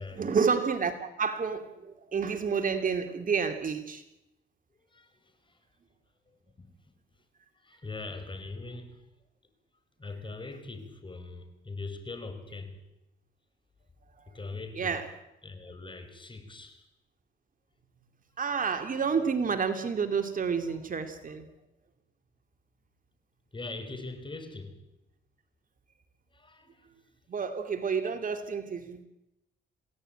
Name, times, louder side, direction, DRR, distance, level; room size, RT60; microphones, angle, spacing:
voice 1, 0.1-4.0 14.8-15.0 18.4-21.5 27.3-29.0, right 6 dB, 45° right, 8 dB, 2.7 m, -29 dB
voice 2, 4.9-5.6 6.3-6.7 7.6-9.0 10.0-12.8 14.3-15.0 15.4-16.9 20.7-20.8 23.5-24.8 26.3-26.9, left 3 dB, 25° left, 9 dB, 5.2 m, -42 dB
28.0 x 17.5 x 9.1 m, 0.92 s
cardioid pair, 90°, 20 cm